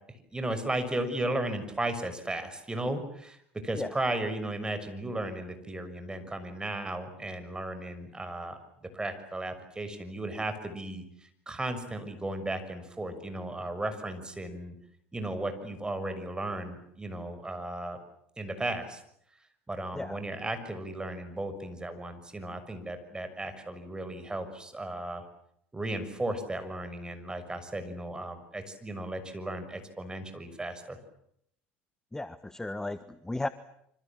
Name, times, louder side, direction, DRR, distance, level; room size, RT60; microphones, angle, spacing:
voice 1, 0.3-14.7 15.1-18.0 18.4-19.0 19.7-25.3 25.7-31.0, right 1 dB, 15° right, 9 dB, 6.3 m, -35 dB
voice 2, 32.1-33.5, left 2 dB, 10° left, 14 dB, 1.3 m, -35 dB
27.5 x 26.0 x 7.5 m, 0.72 s
hypercardioid pair, 75°, 6 cm